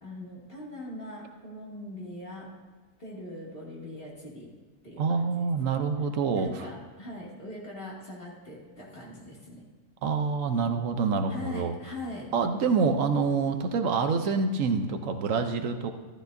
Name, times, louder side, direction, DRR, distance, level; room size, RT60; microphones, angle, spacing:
voice 1, 0.0-2.5 3.0-4.5 4.8-5.3 6.3-9.6 11.3-12.3, left 1 dB, 45° left, -5 dB, 2.6 m, -41 dB
voice 2, 5.0-6.7 10.0-11.7 12.3-15.9, right 5 dB, 75° right, 7 dB, 1.1 m, -26 dB
14.0 x 12.5 x 2.6 m, 1.4 s
omnidirectional pair, 1.4 m